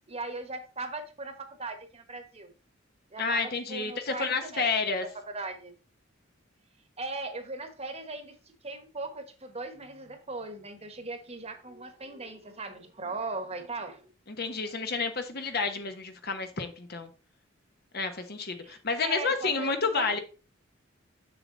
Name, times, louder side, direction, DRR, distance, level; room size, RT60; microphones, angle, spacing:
voice 1, 0.1-2.5 3.1-5.7 7.0-8.4 8.6-14.1 18.6-19.7 19.9-20.2, right 3 dB, 30° right, 1.3 m, -39 dB
voice 2, 3.2-5.1 14.3-17.1 17.9-20.2, left 4 dB, 50° left, 1.2 m, -30 dB
6.9 x 6.8 x 3.9 m
head